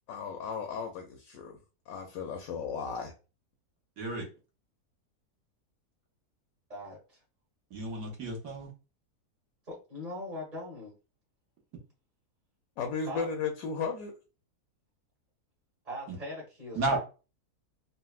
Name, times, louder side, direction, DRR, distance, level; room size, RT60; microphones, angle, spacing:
voice 1, 0.1-1.6 1.9-3.1 12.8-14.2, left 5 dB, 70° left, 0.9 m, -35 dB
voice 2, 4.0-4.3 7.7-8.7 16.7-17.0, right 2 dB, 70° right, 1.4 m, -32 dB
voice 3, 6.7-7.2 9.7-10.9 13.1-13.3 15.8-17.0, left 1 dB, 30° right, 1.0 m, -40 dB
3.9 x 2.1 x 2.3 m
omnidirectional pair, 1.6 m